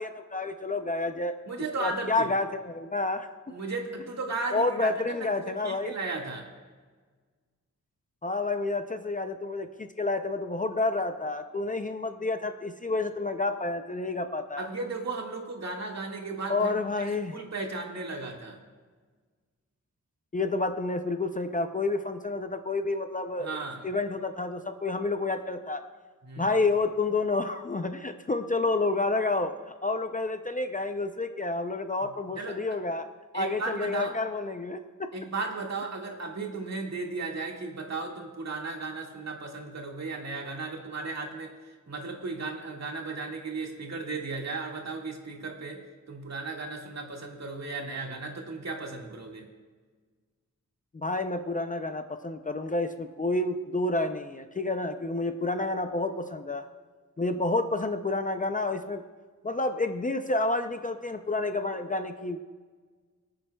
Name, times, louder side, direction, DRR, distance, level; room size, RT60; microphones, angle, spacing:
voice 1, 0.0-1.3 1.8-3.3 4.5-5.9 8.2-14.7 16.5-17.4 20.3-25.8 26.4-33.1 33.3-35.1 50.9-56.7 57.2-59.0 59.4-62.4, left 2 dB, 25° left, 7 dB, 0.5 m, -29 dB
voice 2, 1.5-2.3 3.5-5.3 5.6-6.5 14.6-18.6 23.4-23.8 26.2-26.5 32.4-32.6 33.3-34.1 35.1-41.5 41.9-45.8 46.1-49.5, right 3 dB, 55° right, 0 dB, 1.9 m, -35 dB
26.0 x 8.7 x 2.3 m, 1.5 s
wide cardioid pair, 150°, 31 cm